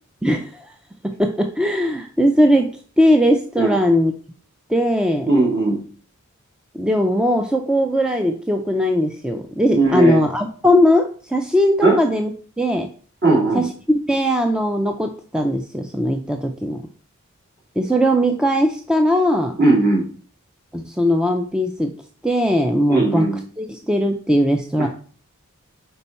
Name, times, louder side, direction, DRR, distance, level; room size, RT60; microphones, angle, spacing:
voice 1, 0.2-0.7 1.0-4.1 4.7-5.3 6.7-12.3 12.6-12.9 13.5-16.8 17.8-19.6 20.7-21.9 22.2-23.3 23.6-24.9, equal, 5° right, 5 dB, 0.4 m, -19 dB
voice 2, 5.3-5.8 9.7-10.2 11.8-12.0 13.2-13.7 19.6-20.1 22.9-23.4 24.8-24.9, right 2 dB, 50° right, -1 dB, 2.4 m, -17 dB
5.5 x 4.5 x 4.2 m, 0.42 s
head